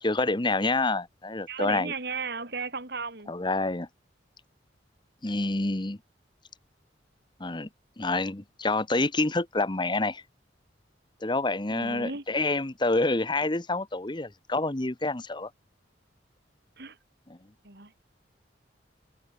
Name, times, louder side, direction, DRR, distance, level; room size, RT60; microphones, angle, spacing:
voice 1, 0.0-1.9 3.3-3.9 5.2-6.0 7.4-7.7 8.0-10.2 11.2-15.5, left 2 dB, 25° left, 1.1 m, -27 dB
voice 2, 1.5-3.3 11.7-12.2 16.8-17.0 17.6-17.9, right 4 dB, 60° right, 3.4 m, -35 dB
head